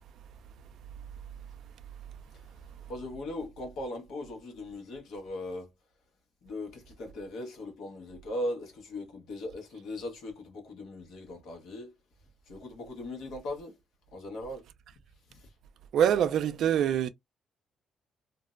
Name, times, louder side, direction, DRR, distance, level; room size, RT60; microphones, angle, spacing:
voice 1, 2.9-5.7 6.4-11.9 12.5-13.8 14.1-14.6 15.3-15.4, left 1 dB, 80° left, 1.0 m, -39 dB
voice 2, 15.9-17.1, right 9 dB, 75° right, 0.3 m, -24 dB
2.5 x 2.1 x 2.4 m
cardioid pair, 90°, 0 cm